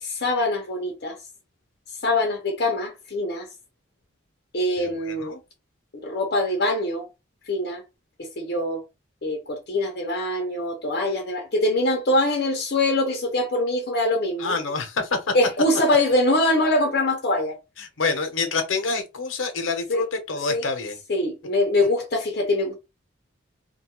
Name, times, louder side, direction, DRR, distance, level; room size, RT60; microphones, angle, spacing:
voice 1, 0.0-1.2 2.0-3.5 4.5-5.3 6.0-7.1 7.5-7.8 8.2-8.8 9.2-14.6 15.3-17.6 19.9-20.0 20.5-20.7 21.1-22.7, left 1 dB, 55° left, 0.6 m, -23 dB
voice 2, 4.8-5.4 14.4-15.2 17.8-21.0, left 4 dB, 85° left, 0.8 m, -27 dB
2.6 x 2.3 x 3.0 m
head